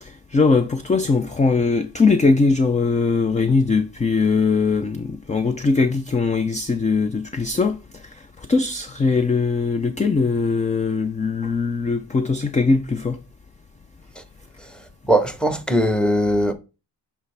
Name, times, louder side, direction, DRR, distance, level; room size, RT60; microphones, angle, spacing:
voice 1, 0.0-7.8 8.5-13.2, left 4 dB, 20° left, 0.4 m, -20 dB
voice 2, 14.7-16.5, equal, ahead, 0.9 m, -20 dB
8.2 x 4.3 x 3.3 m
wide cardioid pair, 120°, 43 cm